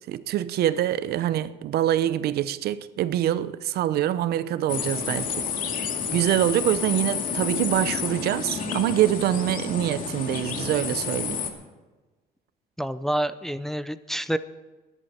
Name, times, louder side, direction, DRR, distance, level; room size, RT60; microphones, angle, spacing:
voice 1, 0.1-5.5 6.1-11.4, right 12 dB, 70° right, 0.7 m, -25 dB
sound 1, 4.7-11.5, left 6 dB, 55° left, 2.3 m, -30 dB
voice 2, 12.8-14.4, right 1 dB, ahead, 0.5 m, -28 dB
20.0 x 11.0 x 4.3 m
cardioid pair, 110°, 17 cm